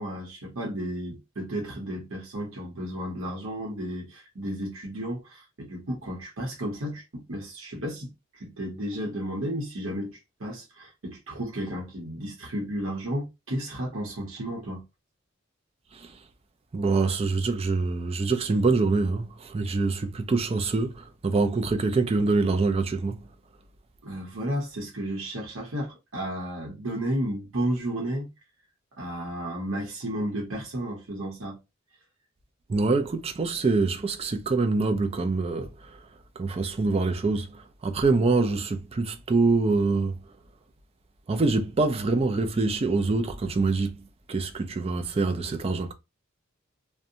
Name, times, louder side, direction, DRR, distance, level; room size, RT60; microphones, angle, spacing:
voice 1, 0.0-8.1 8.3-14.8 24.0-28.3 29.0-31.6, equal, 70° right, 0.9 m, -33 dB
voice 2, 16.7-23.2 32.7-36.0 36.4-40.2 41.3-44.0 44.3-45.9, right 3 dB, 30° right, 0.4 m, -25 dB
2.5 x 2.2 x 2.7 m
head